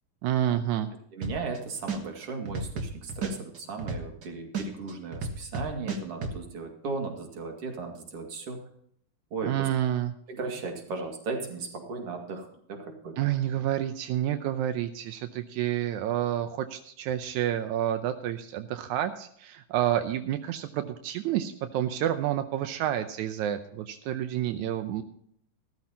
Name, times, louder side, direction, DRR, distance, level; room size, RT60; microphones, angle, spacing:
voice 1, 0.2-0.9 9.4-10.1 13.2-25.0, right 11 dB, 80° right, 9 dB, 1.8 m, -29 dB
voice 2, 1.1-8.6 9.3-9.7 10.3-13.2, right 4 dB, 45° right, 3 dB, 2.7 m, -36 dB
sound 1, 1.2-1.6 1.9-4.2 4.5-6.3, right 4 dB, 65° right, 1.0 m, -32 dB
15.0 x 14.0 x 2.8 m, 0.67 s
omnidirectional pair, 4.1 m